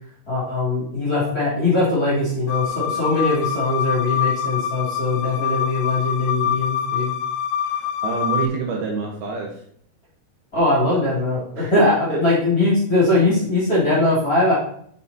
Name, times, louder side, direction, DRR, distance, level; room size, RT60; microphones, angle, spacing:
voice 1, 0.3-7.1 10.5-14.5, left 2 dB, 25° left, -6 dB, 2.7 m, -20 dB
sound 1, 2.5-8.5, left 8 dB, 85° left, 2.4 m, -25 dB
voice 2, 7.7-9.5 11.6-11.7 12.1-12.2, right 5 dB, 70° right, 0 dB, 2.7 m, -27 dB
7.2 x 6.5 x 4.0 m, 0.64 s
omnidirectional pair, 5.1 m